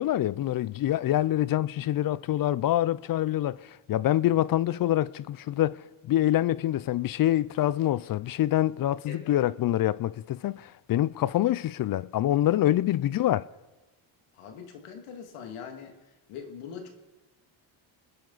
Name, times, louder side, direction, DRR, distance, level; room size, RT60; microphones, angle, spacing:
voice 1, 0.0-13.5, left 13 dB, 45° left, 0.5 m, -26 dB
voice 2, 9.1-9.4 14.3-16.0 16.3-16.9, left 6 dB, 85° left, 2.3 m, -42 dB
29.0 x 10.0 x 4.0 m
cardioid pair, 100°, 49 cm